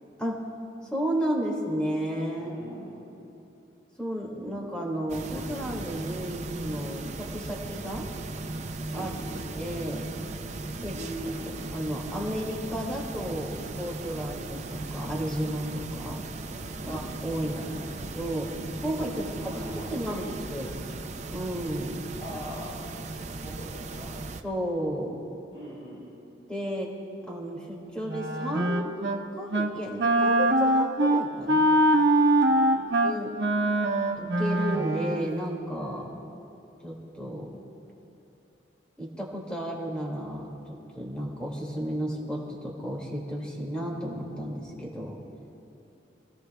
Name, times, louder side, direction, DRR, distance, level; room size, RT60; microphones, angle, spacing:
voice 1, 0.9-2.5 4.0-8.1 8.9-9.1 9.4-10.1 10.8-11.0 11.7-16.2 16.6-17.6 18.0-18.5 18.8-19.5 19.9-20.8 21.3-22.0 24.4-25.1 26.5-26.9 27.3-28.9 29.3-31.7 33.0-33.3 34.2-36.1 36.8-37.5 39.0-45.2, equal, 5° left, -3 dB, 2.2 m, -33 dB
voice 2, 2.4-3.0 8.9-9.3 10.9-11.6 16.8-17.1 17.4-17.9 19.2-20.6 22.2-22.7 23.4-24.1 25.5-26.0 32.5-32.9, equal, 35° left, -8 dB, 4.2 m, -41 dB
sound 1, 5.1-24.4, right 2 dB, 40° right, 0.6 m, -37 dB
Wind instrument woodwind instrument, 28.1-29.2 29.5-29.7 30.0-35.3, right 1 dB, 70° right, 1.2 m, -23 dB
27.5 x 16.0 x 2.3 m, 2.9 s
head